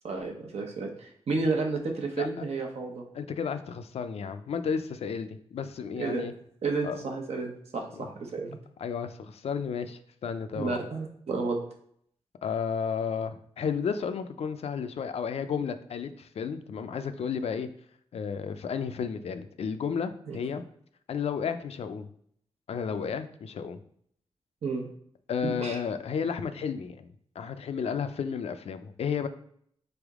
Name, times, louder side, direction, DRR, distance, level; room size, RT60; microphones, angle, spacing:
voice 1, 0.0-3.0 6.0-6.2 6.6-8.6 10.5-11.6 20.3-20.4 24.6-24.9 25.4-25.8, right 3 dB, 80° right, 2 dB, 0.9 m, -31 dB
voice 2, 3.1-6.3 6.8-7.0 7.9-8.0 8.8-10.8 12.4-17.7 18.1-20.6 21.1-22.1 22.7-23.8 25.3-27.1 27.4-29.3, left 6 dB, 75° left, 10 dB, 0.4 m, -32 dB
3.9 x 3.4 x 3.5 m, 0.65 s
wide cardioid pair, 145°, 11 cm